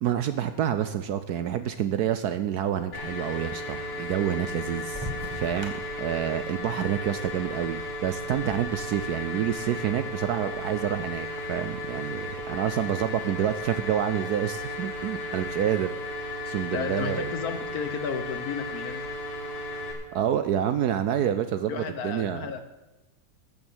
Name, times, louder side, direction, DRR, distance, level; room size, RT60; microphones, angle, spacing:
voice 1, 0.0-15.9 16.4-17.3 20.1-22.5, right 10 dB, 70° right, 11 dB, 1.0 m, -28 dB
sound 1, 2.9-19.9, left 1 dB, 85° left, 3.9 m, -35 dB
sound 2, 4.9-9.0, equal, 15° right, 1.9 m, -42 dB
voice 2, 16.7-19.0 21.7-22.6, left 6 dB, 55° left, 9 dB, 1.3 m, -33 dB
13.5 x 7.3 x 8.0 m, 1.1 s
omnidirectional pair, 2.1 m